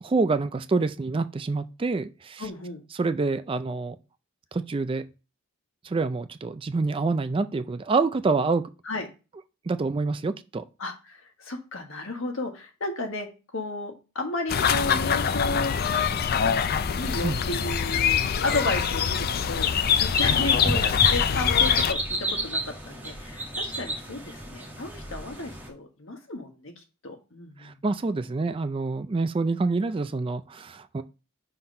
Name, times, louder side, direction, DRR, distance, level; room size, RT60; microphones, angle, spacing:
voice 1, 0.0-2.5 2.9-4.0 4.5-5.0 5.8-8.7 9.7-10.6 17.2-17.4 27.6-31.0, right 3 dB, 25° right, 0.3 m, -27 dB
voice 2, 2.4-2.8 8.8-9.0 10.8-13.3 13.5-16.1 17.0-22.0 22.4-22.6 22.8-27.8, left 2 dB, 65° left, 1.4 m, -33 dB
sound 1, 14.5-21.9, left 7 dB, 45° left, 0.4 m, -24 dB
sound 2, 19.5-25.7, right 1 dB, 10° right, 1.5 m, -33 dB
5.8 x 3.9 x 5.2 m
head